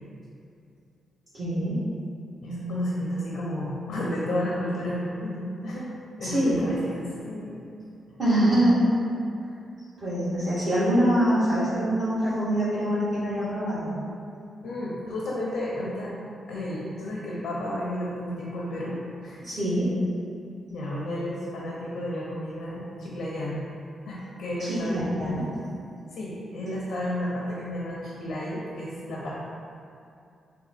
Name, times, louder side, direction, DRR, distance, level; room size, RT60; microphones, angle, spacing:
voice 1, 1.3-1.8 6.2-6.6 8.2-8.7 10.0-13.9 19.4-19.9 24.6-25.4, right 1 dB, 55° right, -13 dB, 1.1 m, -24 dB
voice 2, 2.4-5.9 6.2-7.6 14.6-16.1 16.5-19.4 20.7-23.7 24.1-25.2 26.1-29.3, left 1 dB, 80° left, -6 dB, 0.6 m, -32 dB
2.8 x 2.2 x 4.1 m, 2.5 s
cardioid pair, 120°, 0 cm